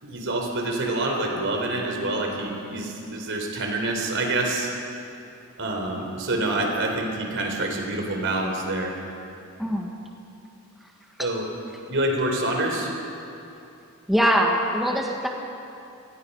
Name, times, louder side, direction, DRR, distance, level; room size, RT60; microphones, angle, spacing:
voice 1, 0.0-4.7 5.6-8.9 11.2-11.5 11.9-12.9, right 2 dB, 60° right, 2 dB, 3.9 m, -26 dB
voice 2, 9.6-9.9 11.2-11.3 14.1-15.3, equal, ahead, 0 dB, 1.6 m, -22 dB
29.0 x 20.0 x 5.6 m, 2.7 s
head